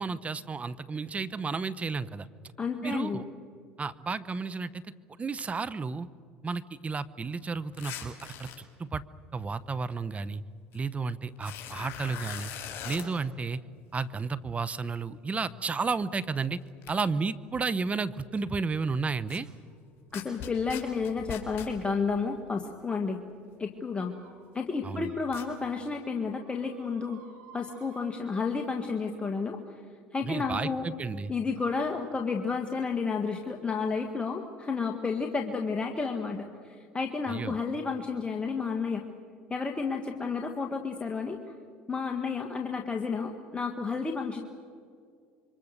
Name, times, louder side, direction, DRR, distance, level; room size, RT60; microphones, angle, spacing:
voice 1, 0.0-2.3 2.8-3.2 3.8-4.8 5.2-6.1 6.4-8.5 8.8-9.0 9.3-10.4 10.7-12.5 12.8-13.6 13.9-16.6 16.9-19.5 24.8-25.1 30.3-31.3 37.3-37.6, right 4 dB, 25° right, 14 dB, 1.0 m, -32 dB
voice 2, 2.6-3.2 20.1-23.2 23.6-24.1 24.5-27.2 27.5-29.8 30.1-30.9 31.3-39.0 39.5-41.4 41.9-44.4, left 4 dB, 20° left, 3 dB, 1.9 m, -31 dB
sound 1, 7.8-8.6 10.7-10.8 11.4-13.1 16.4-16.5 16.8-16.9 19.3-19.4 20.1-21.7 25.3-25.4, left 10 dB, 55° left, 4.8 m, -40 dB
sound 2, 19.5-19.7 20.1-20.5 20.7-21.0 21.3-23.2 23.8-24.3 24.9-25.9 26.2-29.8 30.8-30.9 31.6-31.9, right 6 dB, 70° right, 5.7 m, -57 dB
27.0 x 24.0 x 6.8 m, 2.2 s
hypercardioid pair, 80°, 5 cm